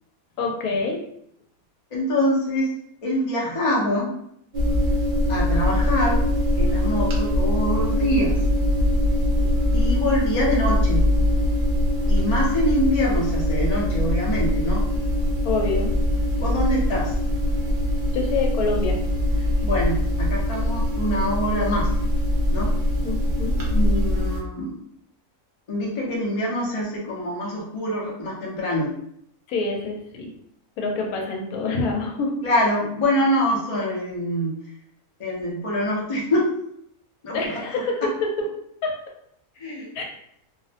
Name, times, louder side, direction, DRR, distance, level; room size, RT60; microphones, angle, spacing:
voice 1, 0.4-1.0 15.4-15.9 18.1-19.0 23.0-23.6 29.5-30.3 30.8-32.4 37.3-38.3 38.8-38.9 39.9-40.0, left 3 dB, 80° left, 0 dB, 1.0 m, -26 dB
voice 2, 1.9-2.7 3.0-4.1 5.3-6.2 6.6-8.3 9.7-11.0 12.1-14.9 16.4-17.1 19.6-21.9 22.5-22.7 23.7-24.8 25.7-28.9 32.4-34.5 35.2-36.5 37.2-38.1 39.6-40.0, equal, 55° left, -4 dB, 0.3 m, -25 dB
sound 1, 4.5-24.4, left 1 dB, 80° right, 0.4 m, -22 dB
2.5 x 2.0 x 2.7 m, 0.72 s
omnidirectional pair, 1.5 m